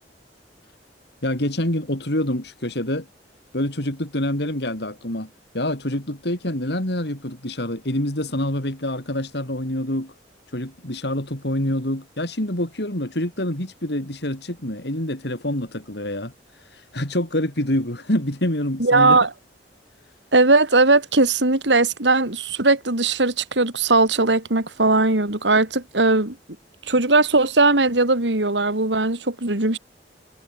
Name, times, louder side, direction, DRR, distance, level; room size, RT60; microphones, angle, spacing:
voice 1, 1.2-3.1 3.5-10.1 10.5-19.2, left 1 dB, 65° left, 5.1 m, -26 dB
voice 2, 18.8-19.3 20.3-26.4 26.9-29.8, right 3 dB, 85° right, 3.1 m, -19 dB
head